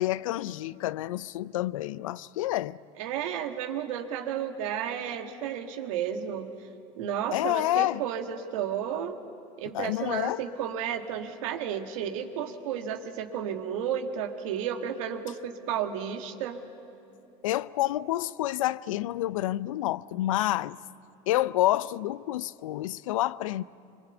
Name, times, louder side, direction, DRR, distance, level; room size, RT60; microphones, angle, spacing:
voice 1, 0.0-2.8 7.3-8.0 9.7-10.4 17.4-20.8 21.3-23.6, left 15 dB, 90° left, 0.5 m, -28 dB
voice 2, 3.0-6.5 7.0-9.2 9.6-16.6, right 8 dB, 80° right, 1.8 m, -32 dB
25.0 x 24.0 x 8.1 m
hypercardioid pair, 80°, 16 cm